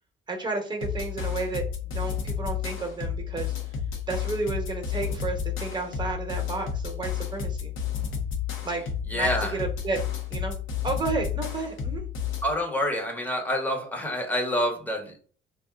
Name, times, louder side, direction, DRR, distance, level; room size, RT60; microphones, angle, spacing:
voice 1, 0.3-3.5 4.1-7.7 8.6-8.8 9.1-10.0 10.3-10.5 10.8-12.0, right 3 dB, 20° right, 3 dB, 1.0 m, -32 dB
sound 1, 0.8-12.5, left 8 dB, 80° left, 0.8 m, -31 dB
voice 2, 9.1-9.6 12.4-15.2, left 1 dB, 10° left, 1 dB, 0.9 m, -27 dB
2.6 x 2.4 x 3.4 m, 0.42 s
cardioid pair, 90°, 20 cm